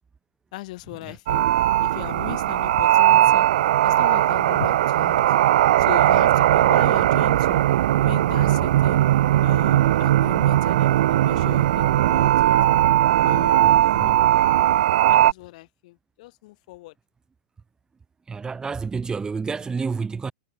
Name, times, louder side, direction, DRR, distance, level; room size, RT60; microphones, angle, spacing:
voice 1, 0.5-1.5 1.8-3.4 3.8-5.2 5.8-7.6 8.0-9.0 9.4-12.5 13.2-14.6 15.1-16.9, left 20 dB, 55° left, 6.1 m, -37 dB
sound 1, 1.3-15.3, right 13 dB, 65° right, 0.3 m, -18 dB
voice 2, 13.6-14.2 18.3-20.3, right 5 dB, 15° right, 4.8 m, -30 dB
hypercardioid pair, 105°, 5 cm